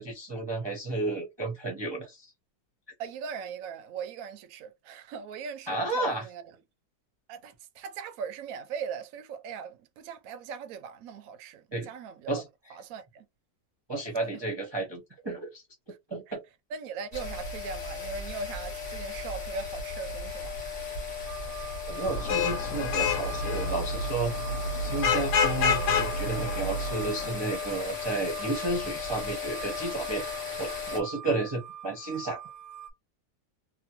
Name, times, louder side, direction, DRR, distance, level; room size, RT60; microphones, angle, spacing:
voice 1, 0.0-2.3 5.7-6.2 11.7-11.9 12.3-12.4 13.9-15.6 16.1-16.4 21.9-24.3 24.8-30.2 30.6-32.4, right 2 dB, 30° right, 0.5 m, -32 dB
voice 2, 3.0-6.4 7.3-12.4 12.7-13.3 16.3-16.4 16.7-20.6 21.5-21.6, right 6 dB, 70° right, 0.9 m, -39 dB
sound 1, 17.1-31.0, left 5 dB, 30° left, 1.1 m, -36 dB
sound 2, 21.3-32.9, right 10 dB, 90° right, 1.3 m, -45 dB
Vehicle horn car horn honking / Traffic noise roadway noise, 22.1-27.3, left 4 dB, 75° left, 1.1 m, -28 dB
2.9 x 2.1 x 2.9 m
omnidirectional pair, 1.9 m